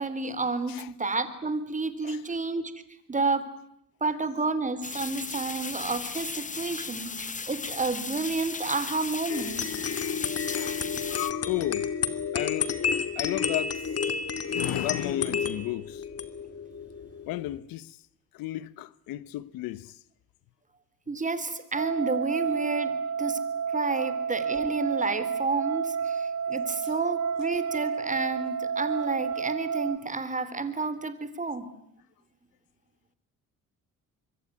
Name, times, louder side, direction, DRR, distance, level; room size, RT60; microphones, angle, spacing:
voice 1, 0.0-2.7 3.1-3.5 4.0-9.7 21.1-23.4 23.7-31.7, right 3 dB, 20° right, 3.5 m, -30 dB
sound 1, 4.8-11.3, left 5 dB, 25° left, 1.0 m, -36 dB
sound 2, 9.3-17.6, left 6 dB, 45° left, 2.5 m, -31 dB
voice 2, 10.5-11.9 12.3-12.8 13.2-13.8 14.5-16.0 17.3-18.0 18.3-20.0, left 16 dB, 90° left, 1.0 m, -34 dB
sound 3, 21.8-30.0, right 6 dB, 50° right, 3.1 m, -30 dB
25.5 x 23.5 x 9.8 m
cardioid pair, 95°, 33 cm